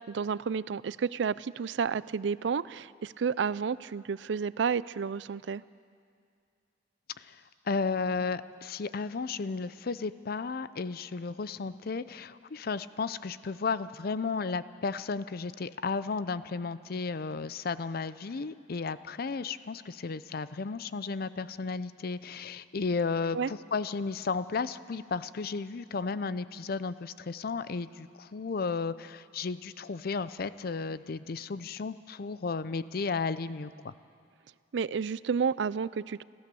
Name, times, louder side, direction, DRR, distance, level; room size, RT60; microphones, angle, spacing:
voice 1, 0.1-5.6 23.3-23.5 34.7-36.2, right 6 dB, 75° right, 19 dB, 0.4 m, -31 dB
voice 2, 7.7-33.9, left 4 dB, 55° left, 15 dB, 0.5 m, -34 dB
27.5 x 13.5 x 6.9 m, 2.3 s
head